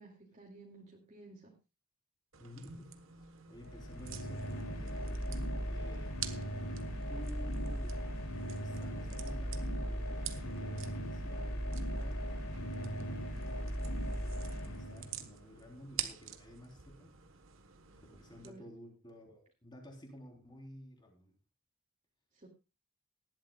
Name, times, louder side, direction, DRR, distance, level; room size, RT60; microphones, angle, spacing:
voice 1, 0.0-1.5 18.4-18.6 22.3-22.5, right 2 dB, 35° right, -2 dB, 2.4 m, -54 dB
sound 1, 2.3-18.5, right 10 dB, 65° right, 1.3 m, -49 dB
voice 2, 2.4-6.2 7.1-8.0 8.6-17.1 18.1-21.3, equal, 20° left, 2 dB, 3.8 m, -53 dB
sound 2, 3.6-15.4, equal, 80° left, 2.9 m, -38 dB
18.5 x 12.5 x 2.4 m, 0.29 s
head